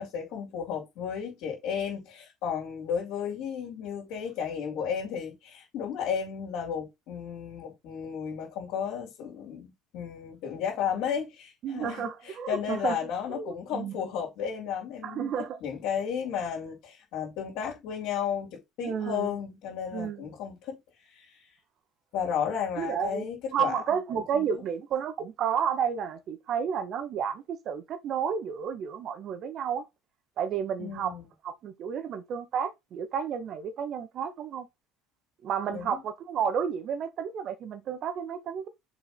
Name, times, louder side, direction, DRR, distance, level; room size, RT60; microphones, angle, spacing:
voice 1, 0.0-15.3 15.6-21.5 22.1-24.6 30.8-31.2 35.7-36.0, left 7 dB, 60° left, 3.2 m, -33 dB
voice 2, 11.6-13.0 13.3-14.0 15.0-15.6 18.8-19.3 19.9-20.3 22.8-23.2 23.5-29.8 30.4-31.2 31.4-34.7 35.4-38.7, right 7 dB, 50° right, 1.5 m, -31 dB
7.0 x 5.1 x 3.9 m
figure-of-eight pair, 65°, 0 cm